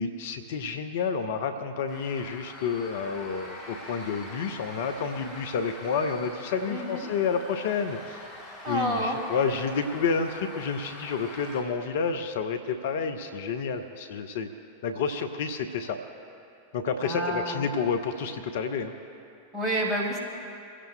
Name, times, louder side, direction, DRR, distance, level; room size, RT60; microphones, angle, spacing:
voice 1, 0.0-8.3 8.7-14.5 14.8-16.0 16.7-18.9, left 5 dB, 55° left, 8 dB, 0.7 m, -30 dB
sound 1, 1.9-11.6, left 1 dB, 40° left, 4.1 m, -44 dB
voice 2, 6.7-7.1 8.6-9.2 17.0-17.6 19.5-20.2, right 1 dB, 20° right, -3 dB, 3.5 m, -29 dB
24.5 x 16.0 x 2.3 m, 2.5 s
figure-of-eight pair, 90°, 0 cm